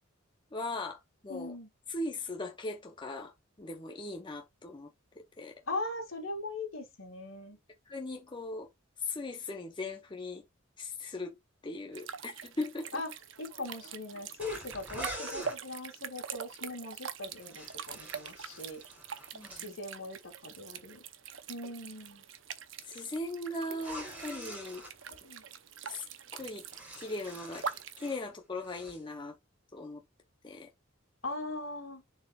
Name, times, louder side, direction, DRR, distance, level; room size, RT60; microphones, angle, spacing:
voice 1, 0.5-1.5 1.9-4.9 5.2-5.6 7.9-8.7 9.0-10.5 10.8-11.4 11.6-13.0 19.3-19.8 22.8-24.9 25.8-26.1 26.3-26.6 26.9-27.6 28.0-29.4 29.7-30.0 30.4-30.7, left 2 dB, 25° left, 0.7 m, -39 dB
voice 2, 1.3-1.7 5.7-7.6 12.9-13.1 13.4-18.8 19.5-21.0 21.5-22.2 25.2-25.4 31.2-32.0, left 2 dB, 85° left, 2.0 m, -40 dB
sound 1, 11.9-28.1, right 7 dB, 70° right, 0.7 m, -44 dB
sound 2, 14.4-15.6 17.2-19.7 23.7-24.9 26.4-28.3 28.6-29.0, right 1 dB, 10° right, 3.2 m, -45 dB
10.0 x 4.3 x 2.3 m
head